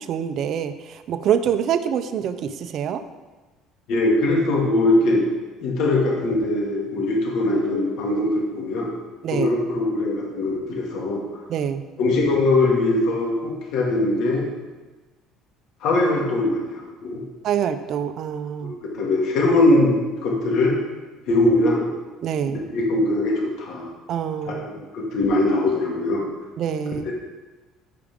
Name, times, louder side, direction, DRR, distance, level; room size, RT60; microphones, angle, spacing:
voice 1, 0.1-3.0 9.2-9.5 11.5-11.8 17.4-18.7 22.2-22.6 24.1-24.7 26.6-27.1, right 8 dB, 50° right, 9 dB, 0.6 m, -25 dB
voice 2, 3.9-5.2 5.6-8.9 9.3-11.2 12.0-14.5 15.8-17.2 18.6-20.8 21.3-21.9 22.5-23.9 24.5-26.2, left 2 dB, 65° left, -2 dB, 2.2 m, -21 dB
14.0 x 4.9 x 3.7 m, 1.2 s
cardioid pair, 130°, 0 cm